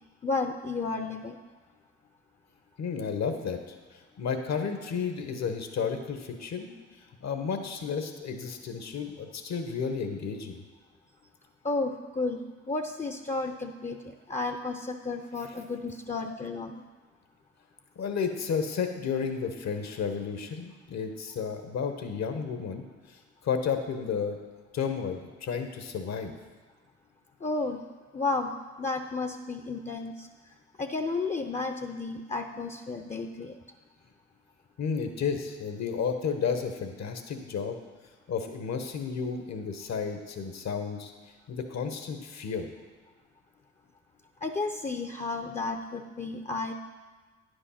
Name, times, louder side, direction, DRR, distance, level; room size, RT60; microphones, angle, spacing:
voice 1, 0.2-1.4 11.6-12.4 12.7-16.8 27.4-27.8 28.1-28.5 28.8-30.3 30.8-33.6 44.4-46.7, left 3 dB, 25° left, 6 dB, 0.7 m, -32 dB
voice 2, 2.8-6.7 7.2-10.6 17.9-24.4 24.7-26.3 34.8-37.8 38.3-41.1 41.5-42.7, left 6 dB, 55° left, 7 dB, 1.2 m, -32 dB
9.9 x 5.2 x 5.7 m, 1.4 s
hypercardioid pair, 45°, 31 cm